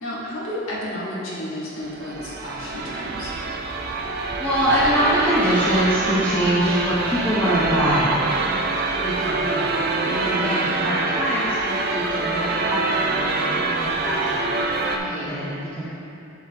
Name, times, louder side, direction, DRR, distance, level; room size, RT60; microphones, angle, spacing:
voice 1, 0.0-3.3 10.0-10.6 14.9-15.3, equal, 75° left, -6 dB, 1.5 m, -31 dB
sound 1, 1.8-15.0, right 3 dB, 45° right, 0.4 m, -25 dB
voice 2, 4.2-8.5 9.0-9.9 10.4-14.5 15.2-15.8, equal, 10° left, -10 dB, 0.7 m, -24 dB
7.9 x 5.8 x 2.8 m, 2.7 s
head